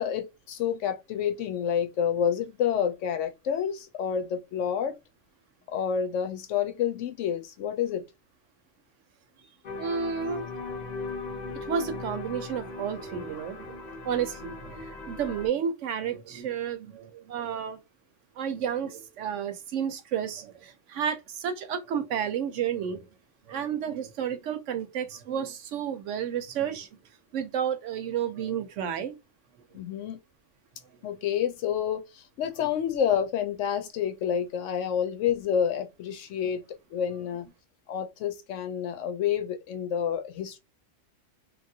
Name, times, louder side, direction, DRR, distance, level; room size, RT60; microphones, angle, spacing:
voice 1, 0.0-4.9 5.7-8.0 29.7-30.2 31.0-36.6 36.9-37.5 37.9-40.6, left 8 dB, 70° left, 0.9 m, -29 dB
sound 1, 9.6-15.5, left 3 dB, 50° left, 0.5 m, -38 dB
voice 2, 9.8-10.5 11.7-13.8 14.0-17.8 18.4-23.1 23.5-26.9 27.3-29.1, right 8 dB, 70° right, 0.9 m, -31 dB
3.0 x 2.3 x 2.6 m
omnidirectional pair, 1.4 m